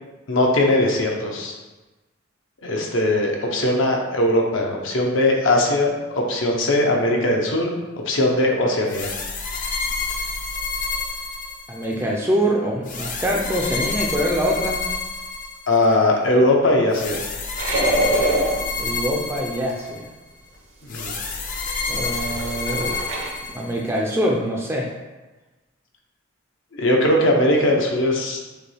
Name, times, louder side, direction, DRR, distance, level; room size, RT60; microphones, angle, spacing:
voice 1, 0.3-1.5 2.6-7.7 8.0-9.1 15.7-17.2 20.9-21.1 26.8-28.5, left 1 dB, 75° left, 0 dB, 0.8 m, -20 dB
sound 1, 8.9-12.0 12.9-16.0 16.9-20.1 20.9-24.0, left 4 dB, 40° left, 0.5 m, -29 dB
voice 2, 11.7-14.8 18.8-20.1 21.9-22.9 23.5-24.9, equal, 15° right, -2 dB, 0.4 m, -24 dB
sound 2, 17.6-18.7 21.7-23.3, right 1 dB, 70° right, 0.9 m, -23 dB
6.6 x 2.3 x 3.3 m, 1.1 s
head